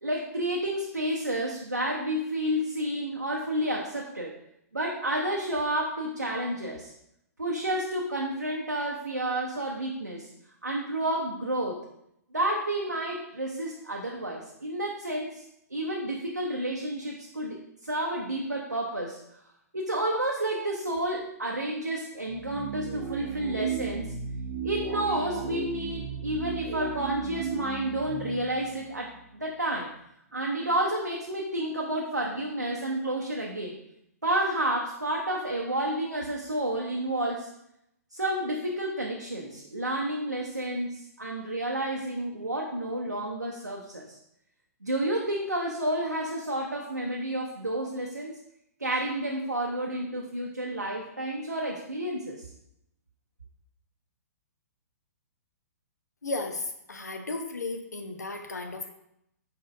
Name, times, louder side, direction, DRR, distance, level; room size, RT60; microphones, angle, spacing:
voice 1, 0.0-4.4 4.7-6.9 7.4-10.3 10.6-11.9 12.3-15.5 15.7-19.2 19.7-24.2 24.6-29.9 30.3-33.8 34.2-37.5 38.1-44.2 44.8-48.4 48.8-52.5, right 1 dB, 90° right, -1 dB, 0.5 m, -30 dB
sound 1, 22.3-29.5, right 7 dB, 30° right, 0.6 m, -35 dB
voice 2, 56.2-58.9, left 3 dB, 75° left, 5 dB, 0.6 m, -34 dB
4.2 x 4.1 x 2.4 m, 0.78 s
figure-of-eight pair, 120°, 9 cm